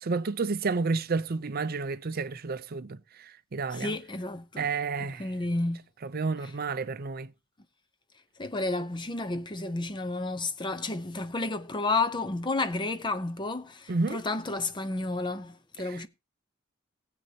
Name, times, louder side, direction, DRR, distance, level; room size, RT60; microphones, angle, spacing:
voice 1, 0.0-4.0 4.6-5.3 6.0-7.3 13.9-14.2 15.8-16.0, right 4 dB, 45° right, 0.5 m, -31 dB
voice 2, 3.7-4.7 5.0-5.8 6.4-6.5 8.4-16.1, left 3 dB, 20° left, 0.6 m, -31 dB
18.5 x 7.9 x 2.8 m
head